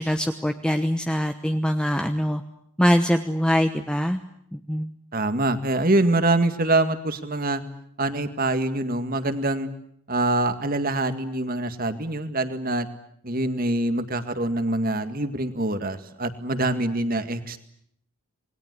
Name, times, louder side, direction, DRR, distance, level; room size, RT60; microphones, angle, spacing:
voice 1, 0.0-2.4 2.8-4.2 4.5-4.9, equal, 5° left, 6 dB, 1.0 m, -23 dB
voice 2, 5.1-7.6 8.0-9.7 10.1-12.9 13.2-17.6, right 2 dB, 40° right, 9 dB, 2.0 m, -24 dB
27.0 x 21.0 x 9.6 m, 0.70 s
head